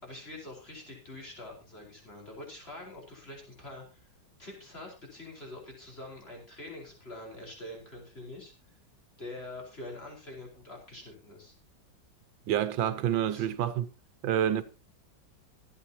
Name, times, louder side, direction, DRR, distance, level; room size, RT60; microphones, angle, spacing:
voice 1, 0.0-4.1 4.4-8.5 9.2-11.5 13.3-13.5, left 2 dB, 30° left, 4.9 m, -45 dB
voice 2, 12.5-13.9 14.2-14.6, right 10 dB, 85° right, 1.6 m, -28 dB
25.5 x 8.6 x 2.9 m
omnidirectional pair, 2.0 m